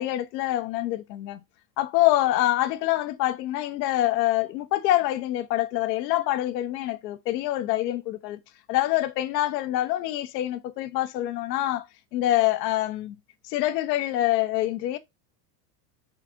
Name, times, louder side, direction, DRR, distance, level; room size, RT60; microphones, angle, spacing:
voice 1, 0.0-1.4 1.8-8.4 8.7-11.9 12.1-13.2 13.4-15.0, left 15 dB, 75° left, 0.7 m, -25 dB
3.9 x 2.5 x 3.6 m
supercardioid pair, 125°, 50 cm